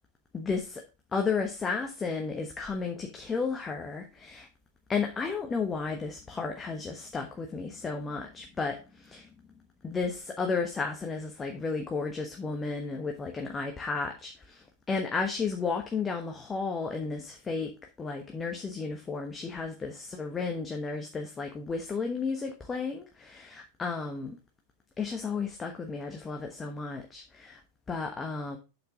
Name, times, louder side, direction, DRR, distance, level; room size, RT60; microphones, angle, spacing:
voice 1, 0.3-0.8 1.1-4.5 4.9-9.3 9.8-17.7 18.0-24.4 25.0-27.6 27.9-28.6, left 4 dB, 15° left, 1.2 m, -33 dB
8.4 x 6.3 x 3.7 m
figure-of-eight pair, 90°, 0 cm